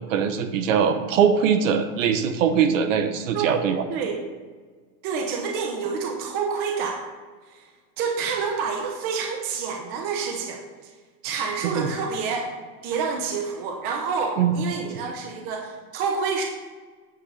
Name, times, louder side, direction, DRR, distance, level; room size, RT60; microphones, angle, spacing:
voice 1, 0.1-3.8 11.6-11.9 14.4-14.6, right 7 dB, 50° right, 8 dB, 1.2 m, -22 dB
voice 2, 3.9-4.2 5.0-7.0 7.5-7.6 8.0-10.6 11.2-12.5 12.8-16.4, right 5 dB, 20° right, 2 dB, 0.7 m, -28 dB
9.0 x 6.1 x 6.6 m, 1.5 s
supercardioid pair, 170°, 47 cm